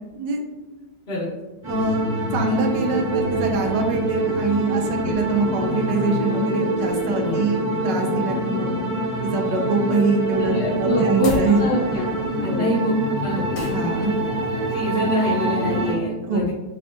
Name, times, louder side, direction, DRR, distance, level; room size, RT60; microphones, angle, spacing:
sound 1, 1.6-15.9, right 1 dB, 25° right, 0.6 m, -25 dB
voice 1, 1.7-2.1 2.3-8.7 9.2-11.6 12.4-12.7 13.6-14.1 16.2-16.5, right 3 dB, 75° right, 2 dB, 1.2 m, -24 dB
voice 2, 7.2-7.6 10.4-12.1 12.4-13.7 14.7-16.5, equal, 50° left, -10 dB, 0.8 m, -26 dB
sound 2, 11.2-11.6 13.5-13.9, left 3 dB, 75° left, 1.3 m, -31 dB
3.4 x 3.4 x 2.6 m, 1.1 s
omnidirectional pair, 2.0 m